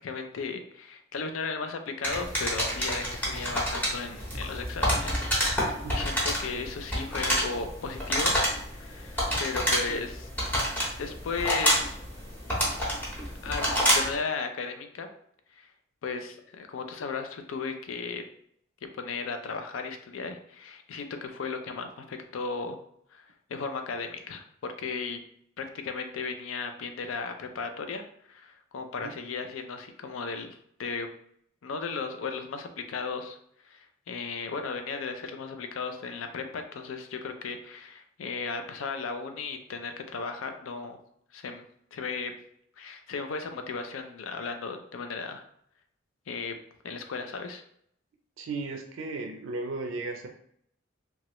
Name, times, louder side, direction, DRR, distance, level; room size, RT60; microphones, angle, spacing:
voice 1, 0.0-8.4 8.7-10.3 11.0-12.0 13.4-15.1 15.6-15.7 16.0-18.2 18.9-22.8 23.1-25.2 25.6-31.1 31.6-33.4 33.6-41.0 41.3-41.6 41.9-42.4 42.8-45.5 46.3-46.5 46.8-47.6, left 4 dB, 85° left, 6 dB, 0.4 m, -35 dB
sound 1, 2.0-14.2, equal, 10° left, 0.7 m, -28 dB
voice 2, 48.4-50.3, right 3 dB, 85° right, 4 dB, 0.4 m, -35 dB
2.9 x 2.3 x 2.9 m, 0.69 s
head